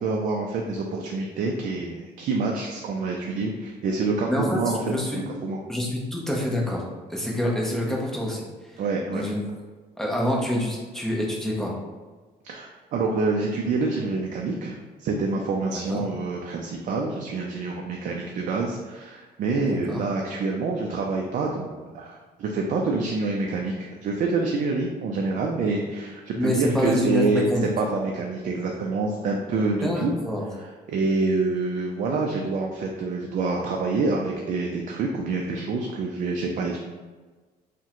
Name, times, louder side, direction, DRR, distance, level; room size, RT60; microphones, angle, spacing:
voice 1, 0.0-5.6 8.8-9.3 12.4-27.4 27.8-30.1 30.6-36.8, right 3 dB, 50° right, 0 dB, 0.4 m, -27 dB
voice 2, 4.3-4.6 4.9-5.2 5.7-6.8 7.1-8.4 9.1-9.4 10.0-11.8 15.7-16.1 19.6-20.0 26.3-27.7 29.8-30.4, left 1 dB, 5° left, -3 dB, 0.6 m, -26 dB
3.5 x 2.1 x 2.9 m, 1.4 s
cardioid pair, 110°, 17 cm